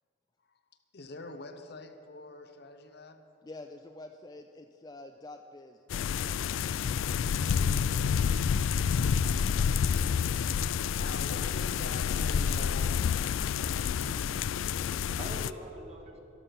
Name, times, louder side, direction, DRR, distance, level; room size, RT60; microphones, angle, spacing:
voice 1, 0.9-3.2 11.0-13.1, left 2 dB, 55° left, 7 dB, 0.9 m, -45 dB
voice 2, 3.4-6.9, left 2 dB, 20° left, 5 dB, 0.4 m, -48 dB
sound 1, 5.9-15.5, left 7 dB, 90° left, 0.3 m, -29 dB
voice 3, 13.8-14.3 14.9-16.2, equal, 35° right, 1 dB, 1.6 m, -45 dB
13.0 x 12.0 x 5.9 m, 2.6 s
head